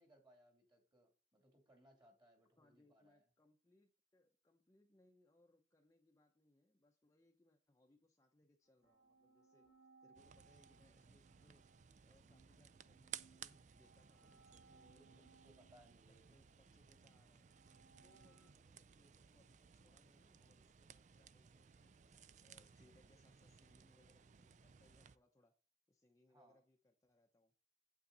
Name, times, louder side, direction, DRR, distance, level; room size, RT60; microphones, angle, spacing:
voice 1, 0.0-3.2 14.7-16.3 26.3-26.6, right 1 dB, 25° right, 2.7 m, -69 dB
voice 2, 2.6-9.7 10.0-15.3 15.7-17.5 18.0-25.5 25.9-27.5, left 1 dB, 15° left, 0.7 m, -74 dB
sound 1, 8.6-18.5, right 4 dB, 75° right, 4.4 m, -70 dB
sound 2, 10.1-25.2, right 9 dB, 40° right, 0.4 m, -59 dB
8.8 x 8.3 x 4.0 m
head